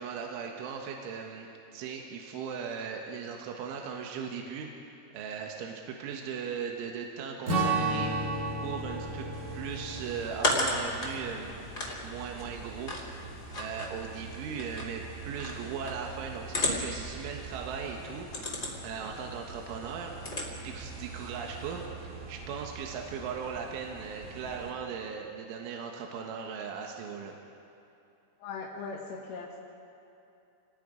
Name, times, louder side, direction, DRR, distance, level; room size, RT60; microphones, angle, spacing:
voice 1, 0.0-4.7 5.1-8.1 8.6-9.3 9.5-11.6 12.0-13.0 13.5-20.4 20.6-21.8 22.3-27.4, right 6 dB, 75° right, 1 dB, 3.8 m, -38 dB
Strum, 7.5-12.1, right 2 dB, 45° right, 1.5 m, -33 dB
sound 1, 7.6-24.7, right 4 dB, 20° right, 1.5 m, -45 dB
sound 2, 9.3-21.9, left 2 dB, 25° left, 2.5 m, -37 dB
voice 2, 28.4-29.6, left 4 dB, 80° left, -4 dB, 4.2 m, -39 dB
29.0 x 21.0 x 5.1 m, 2.7 s
omnidirectional pair, 5.8 m